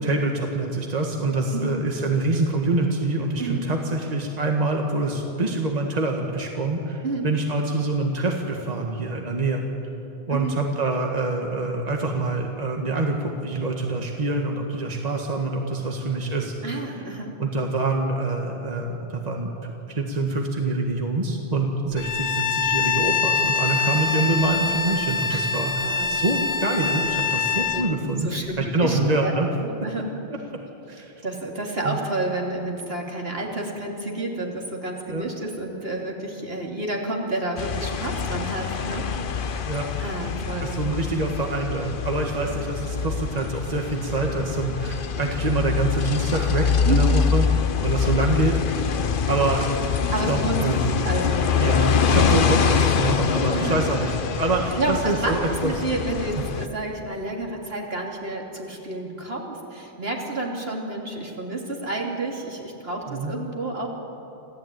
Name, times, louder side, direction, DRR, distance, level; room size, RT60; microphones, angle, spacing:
voice 1, 0.0-9.6 10.3-16.5 17.4-29.5 30.9-31.1 31.8-32.0 35.1-35.2 39.6-39.9 40.6-47.5 47.8-48.6 49.3-51.0 51.6-54.1 54.4-55.7 63.1-63.3, right 2 dB, 40° right, 1 dB, 1.8 m, -25 dB
voice 2, 16.6-17.3 25.3-25.5 25.8-26.2 27.5-27.8 28.2-29.3 29.6-30.1 31.2-39.4 40.0-40.7 42.4-42.5 46.9-47.2 50.1-51.7 52.1-52.2 53.5-53.8 54.8-63.9, right 2 dB, 70° right, 0 dB, 3.2 m, -30 dB
Bowed string instrument, 22.0-27.9, left 6 dB, 90° left, 1.6 m, -24 dB
sound 1, 37.6-56.7, left 6 dB, 55° left, 1.0 m, -25 dB
26.5 x 15.5 x 9.3 m, 3.0 s
omnidirectional pair, 1.1 m